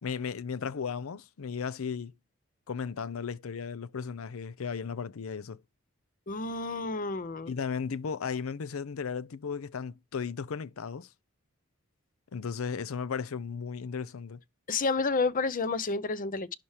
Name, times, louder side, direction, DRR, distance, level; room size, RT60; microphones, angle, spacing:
voice 1, 0.0-2.1 2.7-5.6 7.4-11.1 12.3-14.4, left 6 dB, 85° left, 0.5 m, -35 dB
voice 2, 6.3-7.5 14.7-16.6, left 3 dB, 40° left, 0.6 m, -30 dB
11.5 x 4.4 x 4.8 m
head